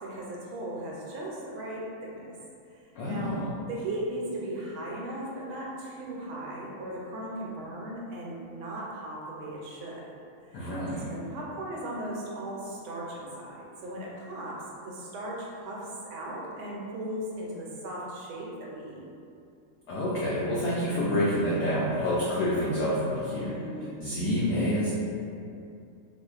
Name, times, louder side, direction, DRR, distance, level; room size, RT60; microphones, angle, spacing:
voice 1, 0.0-2.2 3.0-3.4 3.7-10.0 10.5-10.6 11.1-15.8 16.1-19.0 23.3-23.9, right 1 dB, 80° right, -4 dB, 1.4 m, -37 dB
voice 2, 3.0-3.5 10.5-11.1 19.9-23.5 24.0-24.9, equal, 85° left, -7 dB, 0.8 m, -28 dB
4.0 x 2.5 x 2.3 m, 2.5 s
omnidirectional pair, 2.3 m